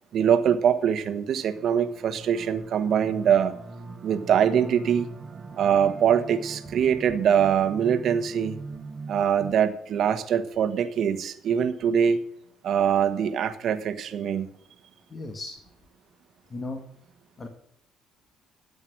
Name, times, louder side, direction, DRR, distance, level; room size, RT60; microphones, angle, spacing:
voice 1, 0.1-3.5 4.0-5.1 5.6-8.6 9.1-12.2 12.6-14.5, right 8 dB, 60° right, 9 dB, 1.4 m, -23 dB
sound 1, 1.4-9.5, right 3 dB, 40° right, 1.5 m, -42 dB
voice 2, 15.1-15.6 16.5-16.8 17.4-17.5, left 2 dB, 35° left, 3 dB, 2.1 m, -35 dB
13.5 x 8.1 x 6.2 m, 0.72 s
cardioid pair, 85°, 0 cm